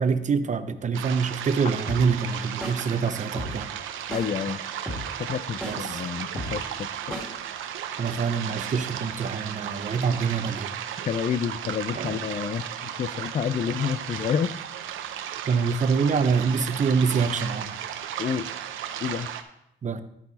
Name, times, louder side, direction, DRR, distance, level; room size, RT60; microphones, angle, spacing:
voice 1, 0.0-3.7 5.6-6.0 8.0-10.7 11.9-12.2 15.4-17.8 19.8-20.0, right 5 dB, 40° right, 10 dB, 0.8 m, -25 dB
sound 1, 0.9-19.4, right 9 dB, 80° right, 0.7 m, -35 dB
sound 2, 1.9-2.0 2.6-2.7 3.4-3.5 4.1-4.2 4.9-5.0 5.6-5.7 6.4-6.5 7.1-7.2, equal, ahead, 2.4 m, -32 dB
voice 2, 4.1-4.6 5.2-7.2 11.0-14.5 18.2-18.5 19.0-19.3, left 7 dB, 40° left, 18 dB, 0.4 m, -29 dB
13.5 x 4.6 x 4.1 m, 0.81 s
cardioid pair, 90°, 20 cm